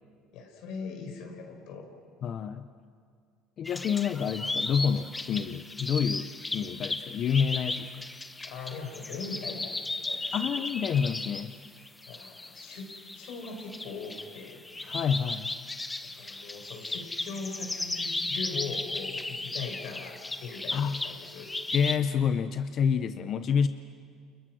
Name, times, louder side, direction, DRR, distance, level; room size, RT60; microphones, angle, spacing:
voice 1, 0.3-1.9 8.4-9.8 10.1-10.5 12.1-14.6 16.0-21.5, left 4 dB, 70° left, 3 dB, 5.7 m, -40 dB
voice 2, 2.2-2.7 3.6-8.0 10.3-11.5 14.8-15.5 20.7-21.0 21.7-23.7, left 7 dB, 45° left, 10 dB, 0.8 m, -28 dB
sound 1, 3.6-22.0, left 2 dB, 15° left, 1.1 m, -36 dB
29.5 x 29.5 x 6.3 m, 2.1 s
cardioid pair, 115°, 0 cm